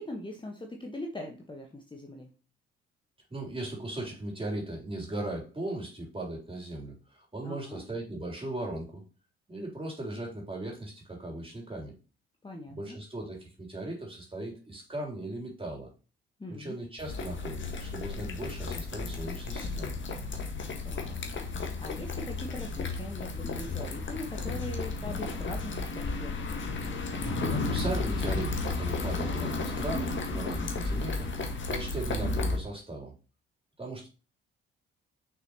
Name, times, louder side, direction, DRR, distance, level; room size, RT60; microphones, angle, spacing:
voice 1, 0.0-2.3 7.4-7.8 12.4-13.0 16.4-16.8 20.8-21.2 21.5-26.5, left 1 dB, 15° left, 2 dB, 1.3 m, -41 dB
voice 2, 3.3-9.0 9.5-11.9 12.7-15.9 16.6-20.0 27.5-31.3 31.7-33.1 33.8-34.1, right 2 dB, 20° right, -1 dB, 3.5 m, -38 dB
sound 1, 17.0-32.6, left 3 dB, 40° left, 1.7 m, -33 dB
6.3 x 6.2 x 3.0 m, 0.34 s
figure-of-eight pair, 45°, 31 cm